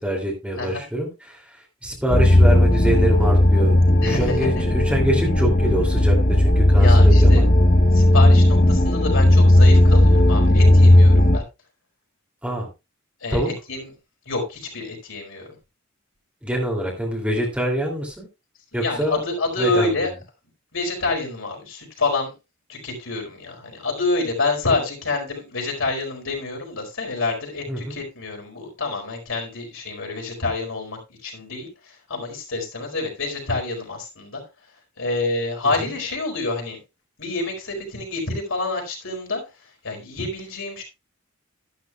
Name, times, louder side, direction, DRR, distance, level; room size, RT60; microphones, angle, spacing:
voice 1, 0.0-3.7 4.0-7.4 12.4-12.7 13.3-13.5 16.4-18.3 18.7-19.2 19.6-20.1 27.7-28.0 35.6-35.9, right 1 dB, 5° right, -2 dB, 2.8 m, -25 dB
sound 1, 2.1-11.4, left 1 dB, 45° left, 0.9 m, -15 dB
voice 2, 4.0-4.6 6.7-7.4 7.9-11.4 13.2-13.9 14.3-15.6 18.7-20.1 20.7-22.3 22.7-34.4 35.0-36.8 37.2-39.4 39.8-40.8, left 3 dB, 80° left, 1 dB, 4.5 m, -27 dB
12.0 x 12.0 x 2.4 m, 0.25 s
head